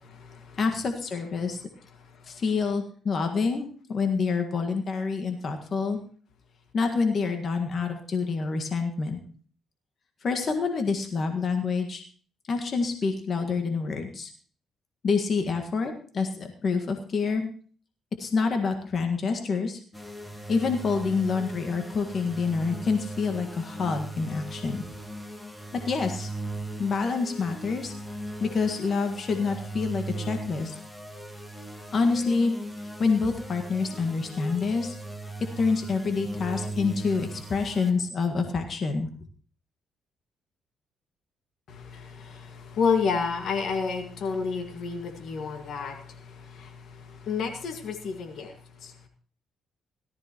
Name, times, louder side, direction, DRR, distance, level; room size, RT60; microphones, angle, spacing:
voice 1, 0.0-0.6 2.0-2.4 41.7-49.1, left 5 dB, 65° left, 6 dB, 1.9 m, -31 dB
voice 2, 0.6-1.6 2.3-6.0 6.7-9.2 10.2-12.0 12.5-14.3 15.0-17.5 18.2-19.8 20.5-24.8 25.7-26.3 26.8-27.9 28.4-30.7 31.9-32.5 33.0-35.0 35.6-39.1, left 4 dB, 50° left, 5 dB, 1.7 m, -27 dB
sound 1, 19.9-37.9, right 2 dB, 10° left, 1.8 m, -38 dB
17.5 x 13.5 x 3.0 m, 0.44 s
cardioid pair, 90°, 0 cm